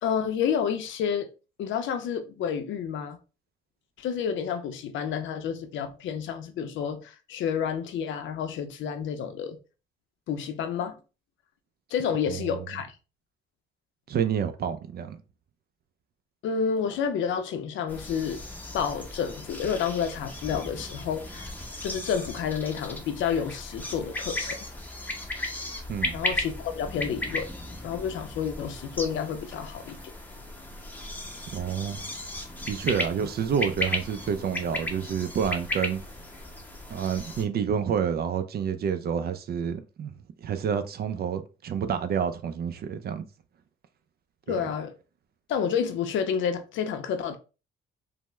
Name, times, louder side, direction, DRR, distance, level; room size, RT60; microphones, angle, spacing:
voice 1, 0.0-1.3 1.6-3.2 4.0-9.6 10.3-11.0 11.9-13.0 16.4-18.4 18.7-21.5 21.8-24.6 26.1-27.5 27.8-30.0 44.5-44.9 45.5-47.4, left 7 dB, 75° left, 0.5 m, -29 dB
voice 2, 14.1-15.2 25.9-26.2 31.5-32.0 32.6-36.0 36.9-40.1 40.4-43.3 44.5-44.6, right 7 dB, 50° right, 0.4 m, -29 dB
sound 1, 17.9-37.4, left 1 dB, 10° left, 0.7 m, -36 dB
3.3 x 2.1 x 3.0 m
cardioid pair, 90°, 20 cm